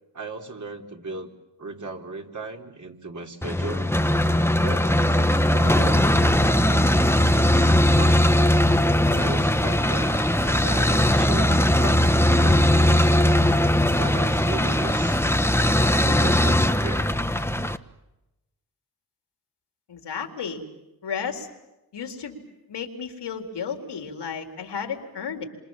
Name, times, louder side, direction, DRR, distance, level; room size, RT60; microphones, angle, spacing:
voice 1, 0.1-1.3 1.6-3.9 4.6-8.5 9.1-12.0 12.4-13.5 14.0-15.2 16.0-17.1, right 3 dB, 45° right, 2 dB, 4.4 m, -37 dB
sound 1, 3.4-17.8, left 1 dB, 5° left, 1.4 m, -20 dB
voice 2, 19.9-20.6 21.0-21.5 21.9-22.4 22.7-25.4, left 6 dB, 85° left, 4 dB, 4.1 m, -33 dB
28.0 x 27.0 x 7.4 m, 0.96 s
cardioid pair, 70°, 40 cm